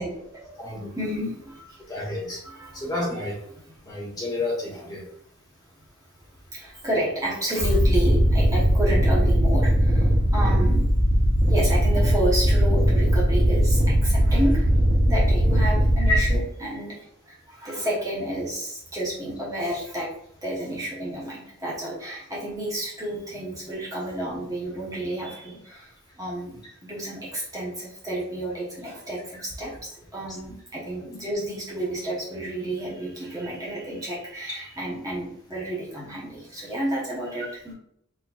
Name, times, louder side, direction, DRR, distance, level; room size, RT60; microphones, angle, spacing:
voice 1, 0.0-0.6 0.9-1.8 2.4-2.8 6.5-10.9 11.5-14.7 15.1-17.0 17.2-20.1 20.4-37.7, right 1 dB, 15° right, -6 dB, 1.2 m, -31 dB
voice 2, 0.6-0.9 1.9-2.4 2.7-3.4 3.8-5.1 16.1-16.2, left 2 dB, 20° left, -5 dB, 1.7 m, -29 dB
sound 1, 7.6-16.3, equal, 35° right, 1.2 m, -19 dB
4.4 x 4.3 x 2.5 m, 0.71 s
head